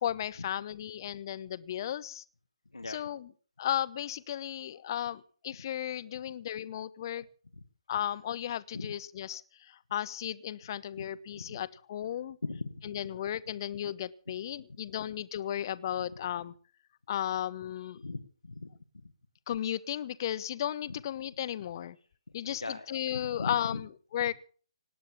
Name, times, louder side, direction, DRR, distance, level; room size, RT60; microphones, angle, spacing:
voice 1, 0.0-2.2 2.9-3.3 3.6-7.3 7.9-12.4 12.8-16.5 17.1-18.0 19.5-22.0 22.3-24.3, left 11 dB, 40° left, 18 dB, 0.8 m, -35 dB
voice 2, 12.4-13.0 17.9-18.7 20.9-21.0 22.4-23.8, left 3 dB, 85° left, 6 dB, 1.7 m, -39 dB
18.5 x 9.3 x 7.1 m, 0.42 s
figure-of-eight pair, 145°, 3 cm